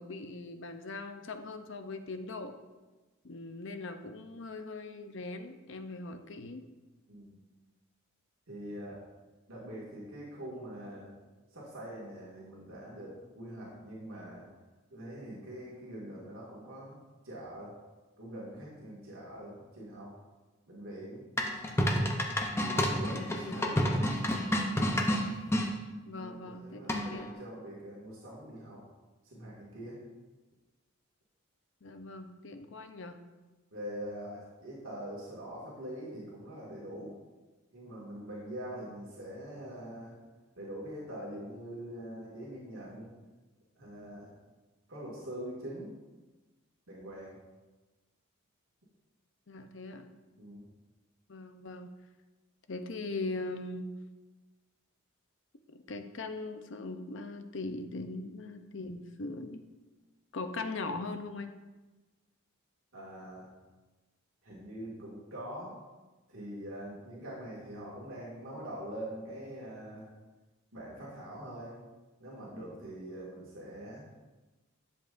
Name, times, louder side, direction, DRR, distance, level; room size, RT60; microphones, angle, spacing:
voice 1, 0.0-2.5 3.2-6.6 23.1-23.5 26.1-27.3 31.8-33.2 49.5-50.1 51.3-51.9 52.7-53.9 55.7-59.6 60.3-61.5, left 3 dB, 60° left, 7 dB, 0.6 m, -40 dB
voice 2, 7.1-7.4 8.5-9.0 9.5-11.1 11.5-14.4 14.9-17.7 18.2-20.1 20.7-21.2 22.7-24.1 26.2-28.8 29.2-30.0 33.7-37.1 37.7-40.1 40.6-43.1 43.8-44.3 44.9-45.9 46.9-47.4 50.4-50.7 62.9-63.5 64.4-65.8 66.3-70.1 70.7-71.7 72.2-74.1, right 1 dB, 75° right, -6 dB, 2.1 m, -43 dB
sound 1, 21.4-25.7 26.9-27.3, equal, 10° left, 0.6 m, -29 dB
10.5 x 7.1 x 2.6 m, 1.2 s
head